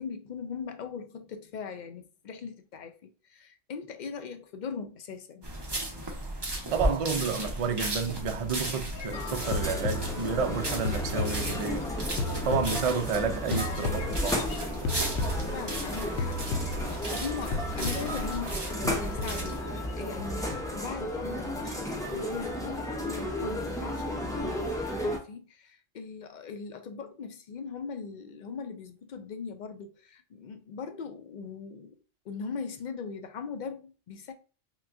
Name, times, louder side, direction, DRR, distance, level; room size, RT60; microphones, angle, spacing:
voice 1, 0.0-5.5 15.5-32.0 32.2-34.3, left 5 dB, 60° left, 0.5 m, -40 dB
sound 1, 5.4-19.6, right 1 dB, 25° right, 0.9 m, -35 dB
voice 2, 6.7-11.8 12.4-14.4, right 5 dB, 50° right, 0.4 m, -30 dB
sound 2, 8.9-10.5 10.8-13.2 13.5-15.9 16.2-17.2 17.5-18.3 18.8-19.9 20.2-20.7, left 3 dB, 75° left, 0.9 m, -35 dB
sound 3, 9.1-25.2, equal, 5° left, 0.5 m, -34 dB
5.7 x 2.2 x 2.5 m
omnidirectional pair, 1.1 m